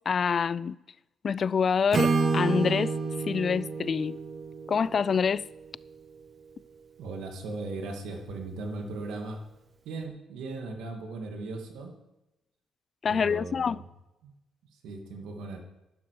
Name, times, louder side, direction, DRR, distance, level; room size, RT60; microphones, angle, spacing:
voice 1, 0.1-0.8 1.2-2.9 3.3-4.2 4.7-5.4 13.0-13.8, left 6 dB, 45° left, 0.3 m, -26 dB
Acoustic guitar / Strum, 1.9-5.9, right 4 dB, 45° right, 1.4 m, -29 dB
voice 2, 7.0-9.4 9.8-11.9 13.1-13.8 14.2-14.3 14.7-15.6, right 3 dB, 85° right, 2.1 m, -38 dB
12.0 x 12.0 x 4.8 m
cardioid pair, 90°, 0 cm